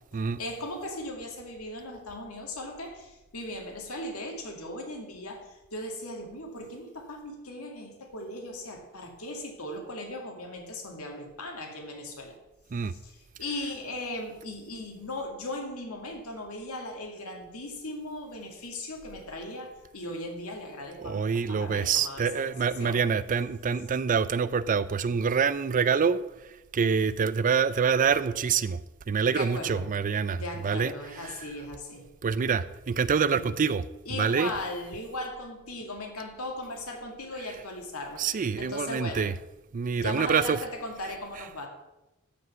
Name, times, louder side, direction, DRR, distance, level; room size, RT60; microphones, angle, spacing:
voice 1, 0.4-12.4 12.8-22.5 22.8-23.0 29.3-29.9 30.3-32.1 33.3-33.5 34.1-38.2 38.6-39.3 40.0-41.7, left 1 dB, 90° left, 2 dB, 2.2 m, -38 dB
voice 2, 21.0-26.2 26.7-28.8 29.1-30.9 31.2-31.3 32.2-33.8 34.1-34.5 38.2-39.3 39.7-40.6, right 6 dB, 40° right, 16 dB, 0.4 m, -26 dB
13.5 x 5.3 x 5.6 m, 0.99 s
head